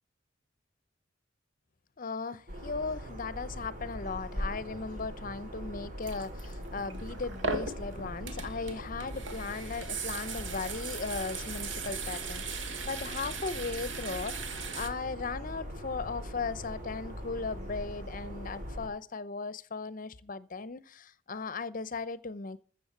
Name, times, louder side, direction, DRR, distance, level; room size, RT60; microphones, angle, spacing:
voice 1, 2.0-22.6, left 4 dB, 45° left, 0.7 m, -37 dB
sound 1, 2.5-18.9, equal, 40° right, 7.5 m, -41 dB
sound 2, 6.0-14.9, right 4 dB, 65° right, 1.6 m, -38 dB
14.0 x 7.2 x 7.2 m
head